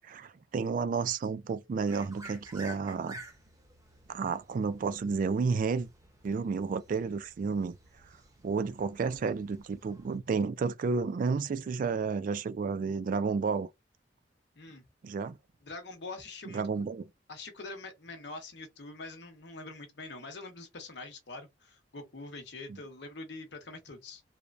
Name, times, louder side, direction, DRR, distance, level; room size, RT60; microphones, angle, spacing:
voice 1, 0.0-3.2 4.1-5.9 6.2-7.7 8.4-13.7 15.0-15.4 16.5-17.0 22.7-22.8, right 5 dB, 50° right, 0.3 m, -31 dB
sound 1, 1.9-10.2, right 1 dB, 20° right, 0.7 m, -52 dB
voice 2, 15.6-16.6 17.3-24.2, left 3 dB, 70° left, 0.9 m, -44 dB
3.1 x 2.1 x 2.5 m
head